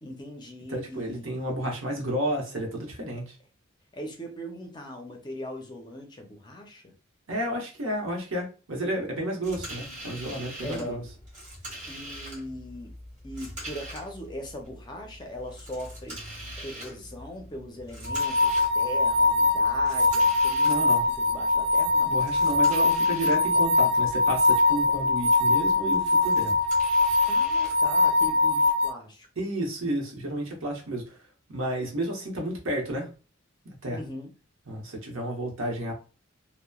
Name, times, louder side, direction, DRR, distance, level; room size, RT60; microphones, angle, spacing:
voice 1, 0.0-1.5 3.9-6.9 10.6-11.0 11.9-12.9 13.2-16.2 16.6-20.8 21.2-22.2 27.2-29.3 33.9-34.3, equal, 20° left, 2 dB, 0.5 m, -40 dB
voice 2, 0.7-3.4 7.3-11.0 20.6-21.0 22.0-26.6 29.4-31.2 31.5-33.1 33.6-34.0 34.7-35.9, right 1 dB, 75° right, 0 dB, 1.0 m, -31 dB
sound 1, 9.4-28.6, equal, 35° right, 1.4 m, -44 dB
sound 2, 18.1-28.9, left 3 dB, 50° right, 0.4 m, -22 dB
2.9 x 2.1 x 2.2 m, 0.34 s
head